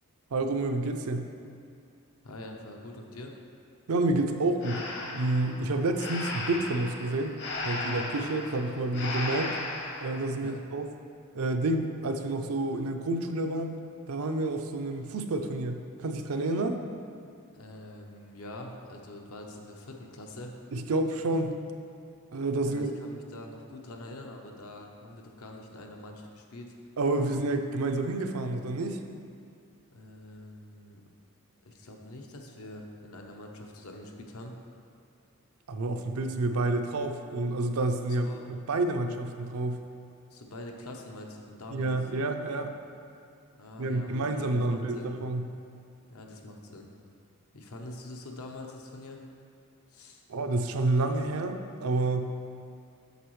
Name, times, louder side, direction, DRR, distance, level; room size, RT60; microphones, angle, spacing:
voice 1, 0.3-1.3 3.9-4.8 5.1-7.3 7.6-9.5 10.0-10.9 11.3-13.8 14.1-16.8 20.7-21.6 22.3-22.9 27.0-29.0 35.7-39.8 41.7-42.7 43.8-45.5 50.3-52.3, right 2 dB, 75° right, 6 dB, 0.5 m, -29 dB
voice 2, 2.2-3.4 10.3-10.6 17.5-20.6 22.6-26.7 27.2-27.4 29.9-31.0 31.6-34.6 38.2-38.6 40.3-42.0 43.6-45.1 46.1-46.9 47.5-49.2 49.9-50.2, left 1 dB, 80° left, 2 dB, 0.8 m, -44 dB
Breathing, 4.6-10.1, left 2 dB, 55° left, 0.9 m, -36 dB
8.0 x 6.2 x 3.1 m, 2.5 s
head